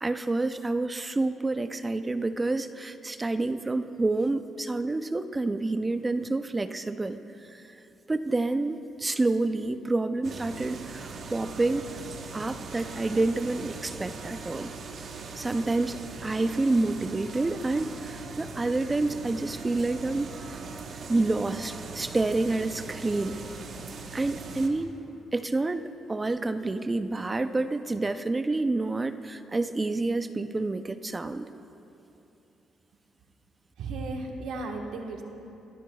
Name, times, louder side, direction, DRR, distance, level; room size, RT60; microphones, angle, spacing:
voice 1, 0.0-7.2 8.1-11.9 12.3-14.7 15.4-20.6 21.1-23.3 24.1-24.9 25.3-31.5, right 2 dB, 20° right, 11 dB, 0.5 m, -28 dB
sound 1, 10.2-24.7, right 4 dB, 60° right, 1.1 m, -40 dB
voice 2, 33.8-35.2, right 3 dB, 80° right, 2 dB, 1.3 m, -35 dB
22.0 x 13.5 x 2.3 m, 2.9 s
cardioid pair, 90°, 0 cm